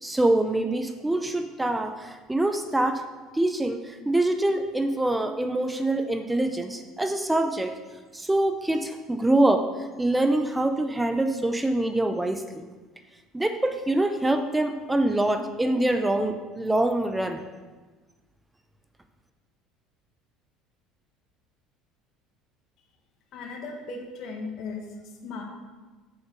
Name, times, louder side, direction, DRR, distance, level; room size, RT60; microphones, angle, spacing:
voice 1, 0.0-3.0 3.3-7.7 8.1-9.7 10.0-12.7 13.3-17.4, right 1 dB, 10° right, 7 dB, 0.6 m, -25 dB
voice 2, 23.3-25.4, left 3 dB, 60° left, 2 dB, 1.5 m, -37 dB
6.7 x 6.5 x 4.6 m, 1.3 s
hypercardioid pair, 70°, 0 cm